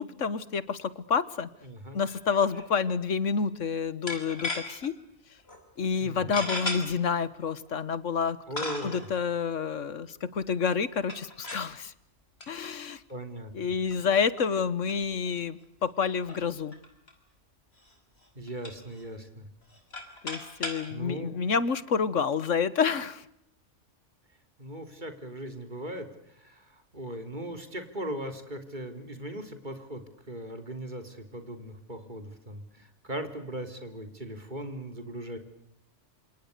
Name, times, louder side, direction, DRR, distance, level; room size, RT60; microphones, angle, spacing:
voice 1, 0.0-1.5 1.9-4.9 5.8-8.4 8.8-11.9 12.5-13.0 13.5-16.7 20.2-23.2, left 6 dB, 85° left, 17 dB, 1.7 m, -28 dB
voice 2, 1.6-2.0 6.0-6.4 8.5-9.1 13.1-13.7 18.4-19.5 20.9-21.3 24.6-35.4, right 1 dB, 40° right, 7 dB, 3.6 m, -39 dB
sound 1, 2.1-2.3 2.5-2.7 4.1-4.9 5.5-5.6 6.3-6.8 7.7-7.8 8.6-9.1 11.0-11.7 12.4-12.7 13.1-13.2 13.9-14.0 14.3-14.5 14.9-15.0 15.3-15.4 15.6-15.7 16.2-17.1 17.8-17.9 18.2-19.0 19.6-20.8, left 2 dB, 55° left, 5.7 m, -36 dB
27.5 x 27.5 x 6.7 m, 0.76 s
omnidirectional pair, 1.3 m